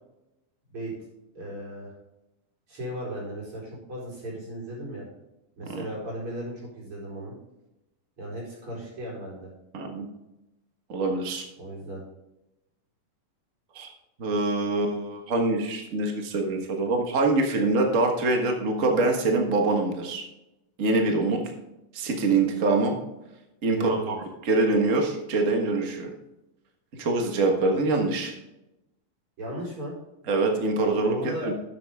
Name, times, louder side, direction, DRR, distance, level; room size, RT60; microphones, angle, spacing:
voice 1, 1.3-1.9 2.7-5.0 5.6-7.3 8.2-9.5 11.6-12.0 23.7-24.1 29.4-30.0 31.0-31.5, right 1 dB, 40° right, -4 dB, 5.0 m, -36 dB
voice 2, 9.7-10.1 10.9-11.4 13.7-13.9 14.2-20.2 20.8-21.4 21.9-22.9 23.6-24.2 24.5-26.1 26.9-28.3 30.3-31.5, right 2 dB, 75° right, 2 dB, 0.7 m, -24 dB
12.0 x 7.9 x 3.6 m, 0.93 s
omnidirectional pair, 3.9 m